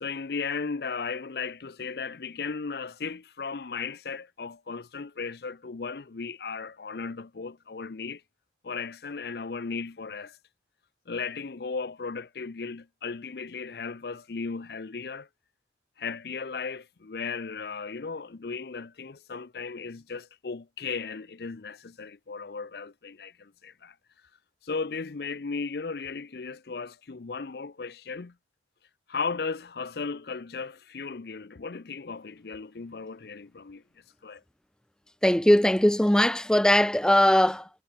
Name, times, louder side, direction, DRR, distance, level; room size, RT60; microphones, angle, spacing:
voice 1, 0.0-8.2 8.6-10.4 11.1-15.3 16.0-24.0 24.6-28.3 29.1-33.8 34.2-34.4, left 4 dB, 60° left, 0.6 m, -36 dB
voice 2, 35.2-37.7, left 1 dB, 5° left, 0.4 m, -20 dB
head